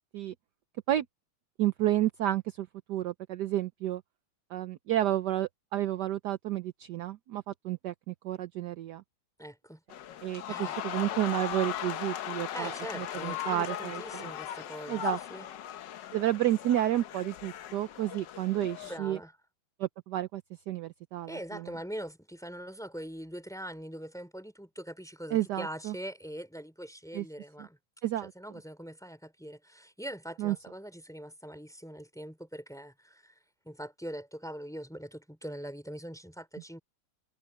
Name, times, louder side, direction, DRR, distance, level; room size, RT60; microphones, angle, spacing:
voice 1, 1.6-4.0 4.5-9.0 10.2-14.3 14.9-15.2 16.1-19.2 19.8-21.7 25.3-25.9 27.1-27.2 27.6-27.7 28.0-28.3 30.4-30.6, right 13 dB, 70° right, 1.0 m, -31 dB
voice 2, 9.4-9.8 10.5-10.8 12.5-15.5 18.8-19.3 21.3-27.8 28.3-33.3 33.6-36.8, equal, ahead, 3.0 m, -42 dB
sound 1, 9.9-19.0, left 11 dB, 65° left, 1.3 m, -38 dB
omnidirectional pair, 2.4 m